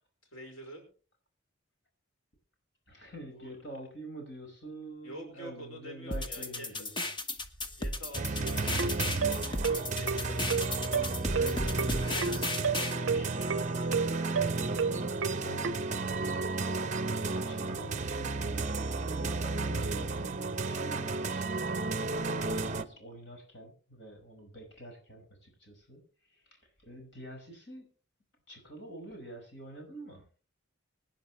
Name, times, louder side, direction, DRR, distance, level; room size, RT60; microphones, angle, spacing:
voice 1, 0.3-0.9 3.3-3.6 5.0-6.7 7.7-14.3, equal, 85° left, 2 dB, 5.1 m, -47 dB
voice 2, 2.9-6.9 15.4-26.0 26.3-27.8 28.5-30.2, right 1 dB, 55° left, 3 dB, 5.3 m, -47 dB
sound 1, 6.1-13.0, left 2 dB, 25° left, 1.1 m, -35 dB
sound 2, 8.1-22.8, right 3 dB, 35° right, 0.8 m, -33 dB
sound 3, 8.4-15.7, right 5 dB, 65° right, 0.5 m, -31 dB
25.5 x 10.0 x 3.1 m, 0.38 s
head